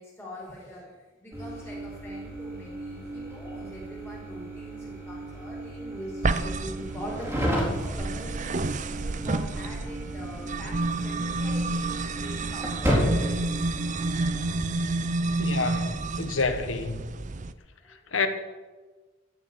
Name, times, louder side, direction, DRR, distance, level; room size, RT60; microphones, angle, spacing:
voice 1, 0.0-8.6 9.0-10.8 11.0-13.4 17.8-17.9, equal, 10° left, 4.5 m, -42 dB
sound 1, 1.3-14.5, right 1 dB, 10° right, 4.0 m, -33 dB
sound 2, 6.2-17.5, right 2 dB, 35° right, 0.6 m, -30 dB
voice 2, 15.4-17.0 18.1-18.3, left 4 dB, 75° left, 1.5 m, -28 dB
15.5 x 6.9 x 9.6 m
head